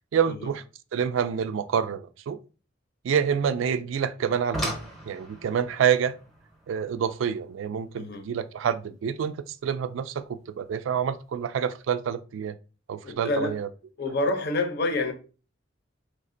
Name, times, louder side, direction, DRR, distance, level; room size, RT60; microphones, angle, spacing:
voice 1, 0.1-0.6 0.9-2.4 3.0-4.8 5.1-6.2 6.7-9.4 9.6-12.6 12.9-13.7, right 7 dB, 70° right, 0.3 m, -27 dB
sound 1, 4.2-9.3 10.7-10.8 11.4-11.6 11.9-12.0, equal, ahead, 0.7 m, -38 dB
voice 2, 13.0-13.6 14.0-15.1, left 2 dB, 50° left, 0.6 m, -27 dB
3.2 x 2.1 x 3.7 m
head